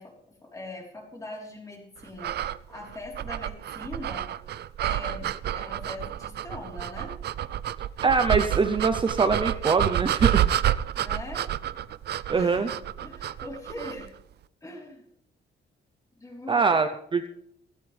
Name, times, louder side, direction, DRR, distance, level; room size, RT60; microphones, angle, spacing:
voice 1, 0.0-2.4 2.7-4.3 4.8-7.2 11.0-11.5 12.3-12.7 13.0-14.1 14.6-15.0 16.1-16.8, left 2 dB, 15° left, -1 dB, 3.9 m, -41 dB
sound 1, 2.2-14.1, right 11 dB, 55° right, 0.5 m, -29 dB
voice 2, 8.0-10.5 12.3-12.7 16.5-17.3, right 4 dB, 25° right, 8 dB, 0.7 m, -23 dB
17.0 x 16.0 x 3.4 m, 0.72 s
wide cardioid pair, 175°, 20 cm